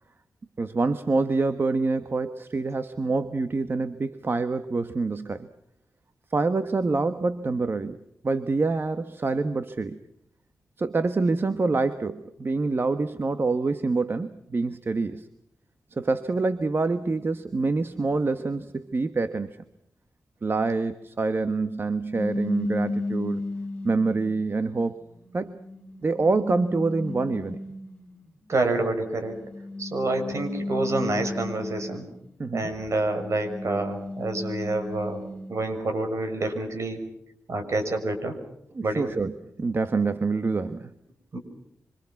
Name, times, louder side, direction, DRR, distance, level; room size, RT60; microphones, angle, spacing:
voice 1, 0.6-5.5 6.3-8.0 8.2-10.0 10.8-15.3 15.9-19.6 20.4-23.4 23.8-25.0 25.3-25.6 26.0-27.6 32.4-32.7 38.7-40.9, right 3 dB, 40° right, 10 dB, 1.3 m, -26 dB
sound 1, 22.1-24.3 25.0-28.1 29.2-32.2 32.6-35.6, left 2 dB, 15° left, 4.4 m, -34 dB
voice 2, 28.5-29.3 29.8-32.1 32.5-35.2 35.5-37.0 37.5-38.4 38.8-39.1 41.3-41.4, right 2 dB, 60° right, 7 dB, 6.4 m, -27 dB
26.5 x 26.5 x 6.0 m, 0.76 s
wide cardioid pair, 95°, 6 cm